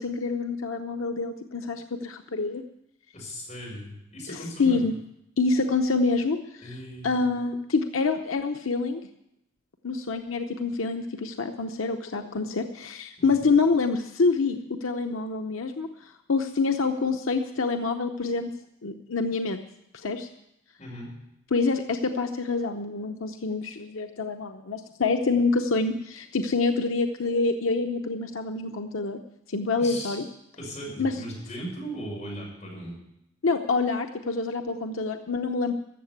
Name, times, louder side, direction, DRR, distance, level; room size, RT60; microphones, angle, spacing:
voice 1, 0.0-2.6 4.3-5.0 5.4-6.7 7.0-9.0 9.8-18.5 18.8-19.6 19.9-20.3 21.5-29.2 29.5-30.2 31.0-31.1 33.4-35.7, left 4 dB, 85° left, 5 dB, 0.8 m, -26 dB
voice 2, 3.1-4.8 6.6-7.2 13.2-13.3 20.8-21.1 29.8-30.2 30.6-33.0, equal, 35° left, -4 dB, 6.0 m, -38 dB
14.5 x 7.3 x 9.5 m, 0.81 s
head